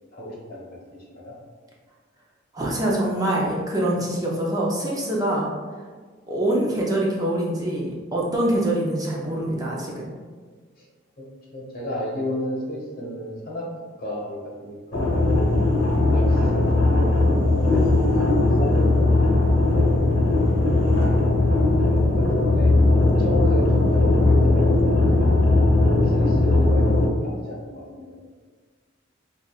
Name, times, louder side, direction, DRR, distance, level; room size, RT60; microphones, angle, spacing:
voice 1, 0.1-0.8 1.1-1.3 10.8-10.9 11.2-11.3 11.5-13.6 14.0-15.3 16.1-20.0 21.8-22.7 23.2-25.2 25.8-28.2, equal, 50° left, -4 dB, 1.1 m, -33 dB
voice 2, 2.5-5.5 6.3-10.1, right 1 dB, 20° right, -4 dB, 0.5 m, -24 dB
sound 1, 14.9-27.1, left 2 dB, 75° left, 0.8 m, -18 dB
5.6 x 2.4 x 2.4 m, 1.5 s
head